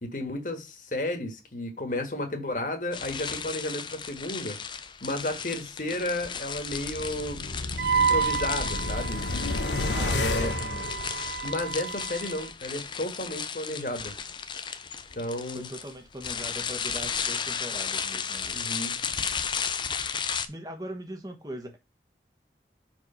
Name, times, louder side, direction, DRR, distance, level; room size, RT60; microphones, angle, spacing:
voice 1, 0.0-4.6 5.0-7.4 7.9-9.2 10.1-10.5 11.4-14.1 15.1-15.7 18.5-18.9, left 1 dB, 45° left, 1.5 m, -32 dB
sound 1, 2.9-20.5, left 6 dB, 25° left, 0.5 m, -34 dB
sound 2, 6.6-11.7 12.1-12.2, left 2 dB, 85° left, 0.9 m, -32 dB
Wind instrument woodwind instrument, 7.8-12.4, right 6 dB, 65° right, 0.4 m, -30 dB
voice 2, 9.9-10.8 15.5-18.6 20.5-21.8, equal, 20° right, 1.2 m, -40 dB
4.7 x 4.2 x 5.5 m
head